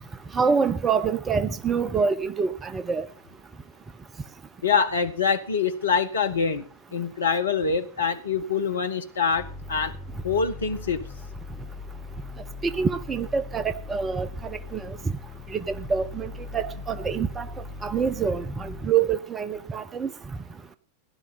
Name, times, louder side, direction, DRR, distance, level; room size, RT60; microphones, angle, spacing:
voice 1, 0.3-3.1 12.6-15.0 15.5-17.5 17.8-20.1, right 6 dB, 20° right, 0.9 m, -26 dB
voice 2, 4.6-9.9 10.2-11.0, left 5 dB, 70° left, 1.6 m, -25 dB
sound 1, 9.4-18.9, left 3 dB, 15° left, 7.4 m, -40 dB
17.0 x 11.5 x 4.2 m
figure-of-eight pair, 90°, 0 cm